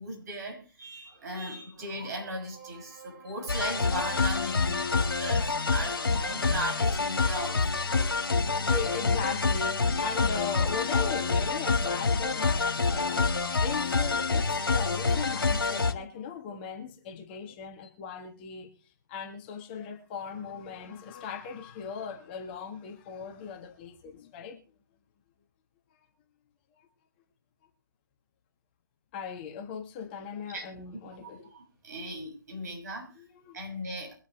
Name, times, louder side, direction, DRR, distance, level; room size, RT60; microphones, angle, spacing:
voice 1, 0.0-8.1 30.5-30.6 31.2-33.1 33.5-34.1, right 1 dB, 45° right, 1 dB, 6.7 m, -38 dB
sound 1, 3.5-15.9, left 4 dB, 80° left, 2.2 m, -27 dB
voice 2, 7.9-13.2 13.6-18.7 19.1-24.6 26.8-26.9 29.1-31.4 33.2-33.6, left 6 dB, 25° left, 4 dB, 1.5 m, -38 dB
23.0 x 8.0 x 3.2 m, 0.34 s
figure-of-eight pair, 150°, 12 cm